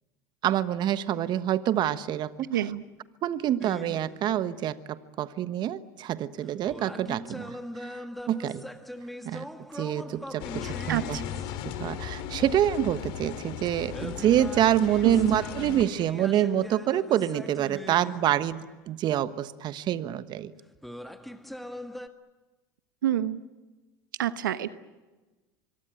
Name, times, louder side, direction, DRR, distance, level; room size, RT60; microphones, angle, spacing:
voice 1, 0.4-2.6 3.2-8.6 9.2-9.4 9.7-11.2 11.6-20.5, right 11 dB, 45° right, 13 dB, 1.2 m, -27 dB
voice 2, 2.5-2.8 10.9-11.2 15.0-15.4 23.0-23.4 24.2-24.7, right 11 dB, 90° right, 13 dB, 1.0 m, -27 dB
sound 1, 3.6-4.5 6.5-12.0 13.9-18.8 20.8-22.1, equal, ahead, 1.6 m, -42 dB
sound 2, 10.4-15.8, left 10 dB, 60° left, 2.5 m, -37 dB
25.5 x 23.0 x 9.2 m, 1.2 s
hypercardioid pair, 95°, 10 cm